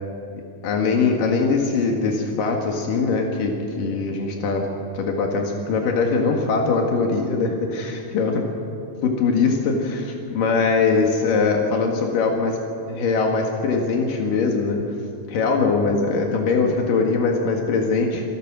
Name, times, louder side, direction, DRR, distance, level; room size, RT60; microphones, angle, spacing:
voice 1, 0.6-4.7 4.9-8.5 9.0-12.6 12.9-14.8 15.3-18.2, left 4 dB, 90° left, 1 dB, 3.5 m, -21 dB
27.0 x 17.5 x 6.2 m, 2.5 s
omnidirectional pair, 3.7 m